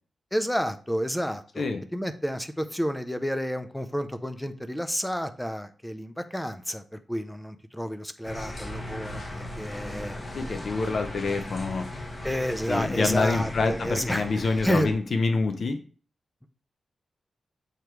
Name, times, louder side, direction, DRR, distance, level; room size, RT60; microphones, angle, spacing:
voice 1, 0.3-1.6 1.9-10.2 12.2-14.9, equal, 5° left, 10 dB, 0.4 m, -30 dB
sound 1, 8.2-14.9, left 1 dB, 25° left, 1.1 m, -37 dB
voice 2, 10.3-11.9 12.7-15.8, left 3 dB, 50° left, 6 dB, 0.6 m, -26 dB
6.8 x 3.1 x 4.6 m, 0.39 s
wide cardioid pair, 170°, 0 cm